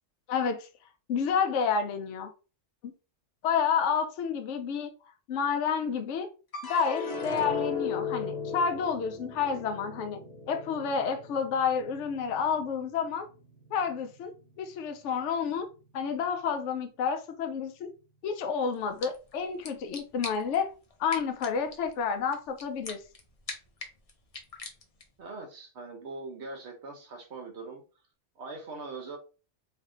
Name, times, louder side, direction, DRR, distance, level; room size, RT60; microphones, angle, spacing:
voice 1, 0.3-0.7 1.1-2.3 2.8-2.9 3.4-4.9 5.3-6.3 6.7-10.2 10.5-13.3 13.7-15.7 15.9-17.9 18.2-20.7 21.0-23.0, left 6 dB, 75° left, 0.9 m, -30 dB
sound 1, 6.5-13.0 13.4-14.1, left 5 dB, 60° left, 1.2 m, -37 dB
sound 2, 18.7-25.2, left 3 dB, 40° left, 0.6 m, -45 dB
voice 2, 25.2-27.8 28.4-29.2, right 3 dB, 65° right, 1.1 m, -41 dB
3.3 x 2.6 x 3.7 m
omnidirectional pair, 1.2 m